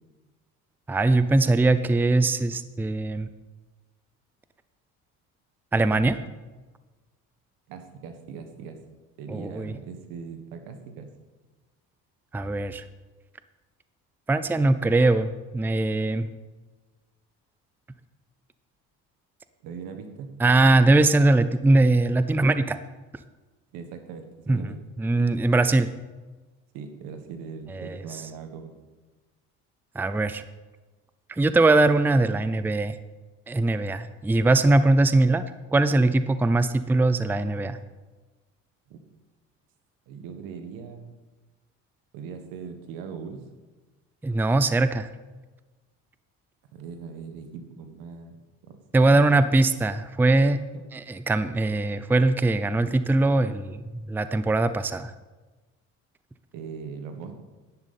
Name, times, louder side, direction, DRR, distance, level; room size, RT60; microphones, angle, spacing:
voice 1, 0.9-3.3 5.7-6.2 9.3-9.8 12.3-12.8 14.3-16.3 20.4-22.8 24.5-25.9 27.7-28.0 29.9-30.4 31.3-33.0 33.5-35.4 35.7-37.8 44.2-45.1 48.9-50.6 50.9-55.1, right 2 dB, 5° right, 12 dB, 0.5 m, -21 dB
voice 2, 7.7-8.8 9.2-11.1 19.6-20.4 23.7-24.8 26.7-28.7 38.9-39.0 40.1-41.1 42.1-43.4 46.7-48.4 48.7-48.8 49.1-49.6 56.5-57.3, right 6 dB, 80° right, 7 dB, 1.6 m, -40 dB
10.5 x 10.5 x 4.2 m, 1.2 s
supercardioid pair, 90°, 34 cm